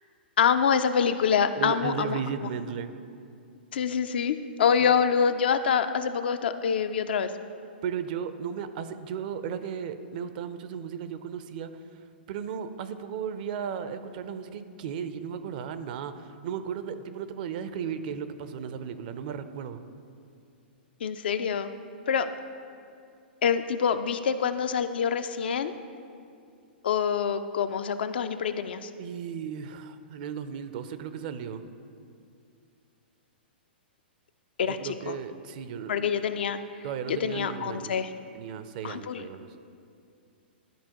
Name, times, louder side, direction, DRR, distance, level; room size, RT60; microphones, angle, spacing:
voice 1, 0.4-2.5 3.7-7.3 21.0-21.7 22.1-22.3 23.4-25.7 26.8-28.9 34.6-35.2 35.9-36.6 37.1-38.1 38.8-39.2, left 7 dB, 65° left, 10 dB, 0.4 m, -26 dB
voice 2, 1.6-2.9 7.8-11.7 12.3-19.8 29.0-31.6 34.6-36.1 36.8-37.9 38.3-39.5, right 7 dB, 50° right, 11 dB, 0.4 m, -35 dB
12.0 x 4.3 x 2.9 m, 2.5 s
hypercardioid pair, 115°, 6 cm